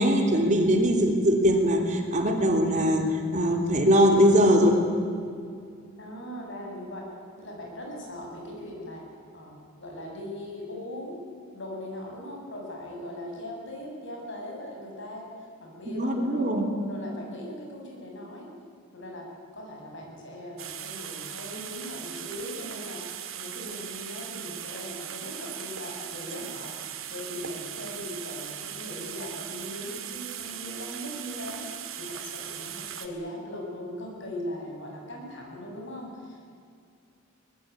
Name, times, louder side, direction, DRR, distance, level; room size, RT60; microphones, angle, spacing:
voice 1, 0.0-3.0 3.3-4.8 16.0-16.6, equal, 35° right, 3 dB, 3.1 m, -21 dB
voice 2, 6.0-9.0 9.3-16.5 16.8-18.5 18.9-19.2 19.5-26.7 27.1-36.4, left 1 dB, 60° left, 0 dB, 7.7 m, -39 dB
sound 1, 20.6-33.1, right 9 dB, 75° right, 2.3 m, -39 dB
24.0 x 20.0 x 9.6 m, 2.4 s
head